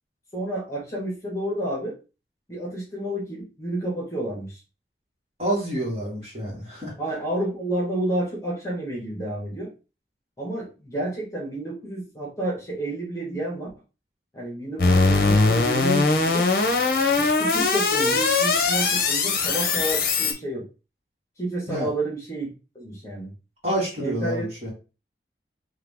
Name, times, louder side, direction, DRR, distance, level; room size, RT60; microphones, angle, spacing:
voice 1, 0.3-2.0 2.5-4.6 7.0-9.7 10.4-13.7 14.3-16.5 17.2-20.6 21.4-23.3 24.0-24.5, right 1 dB, 15° left, -4 dB, 1.7 m, -30 dB
voice 2, 5.4-6.9 21.7-21.9 23.6-24.7, right 1 dB, 35° right, -5 dB, 2.2 m, -28 dB
sound 1, 14.8-20.3, left 4 dB, 55° left, 0.8 m, -21 dB
3.8 x 3.2 x 3.6 m, 0.31 s
head